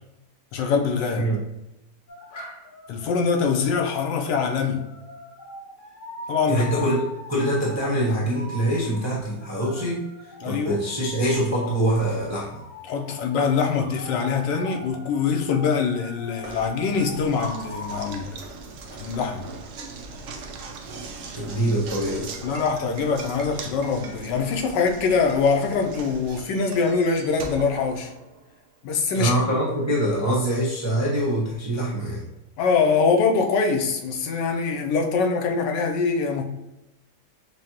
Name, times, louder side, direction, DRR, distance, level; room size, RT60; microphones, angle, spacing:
voice 1, 0.5-1.3 2.9-4.9 6.3-6.8 10.4-10.8 12.9-18.4 19.0-19.5 22.4-28.1 28.8-29.3 32.6-36.4, left 5 dB, 90° left, 3 dB, 1.3 m, -23 dB
sound 1, 2.1-18.2, left 1 dB, 60° left, 0.5 m, -41 dB
voice 2, 6.5-10.0 10.4-12.6 21.3-22.3 29.1-32.2, right 1 dB, 25° right, -7 dB, 0.6 m, -24 dB
Knock, 16.4-28.6, right 4 dB, 75° right, 0.7 m, -39 dB
6.1 x 2.1 x 2.9 m, 0.95 s
omnidirectional pair, 1.8 m